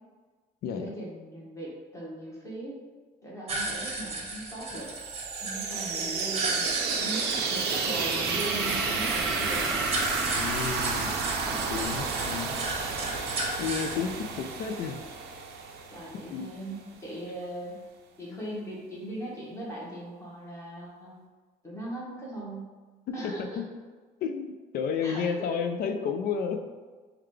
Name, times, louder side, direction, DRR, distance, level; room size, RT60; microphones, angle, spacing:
voice 1, 0.8-2.8 3.2-4.9 5.4-9.8 15.9-17.8 18.2-21.1 21.6-22.7 23.1-23.6 25.0-25.5, right 1 dB, 15° left, -5 dB, 1.2 m, -39 dB
sound 1, 3.5-13.9, right 2 dB, 40° right, 0.7 m, -36 dB
sound 2, 4.8-16.5, right 5 dB, 75° right, 0.5 m, -31 dB
sound 3, 7.4-11.8, equal, ahead, 0.4 m, -37 dB
voice 2, 10.4-11.1 11.5-12.6 13.6-15.0 16.3-16.5 18.3-18.4 23.4-23.6 24.2-26.6, left 6 dB, 65° left, 7 dB, 0.4 m, -32 dB
3.7 x 2.3 x 3.1 m, 1.4 s
cardioid pair, 110°, 17 cm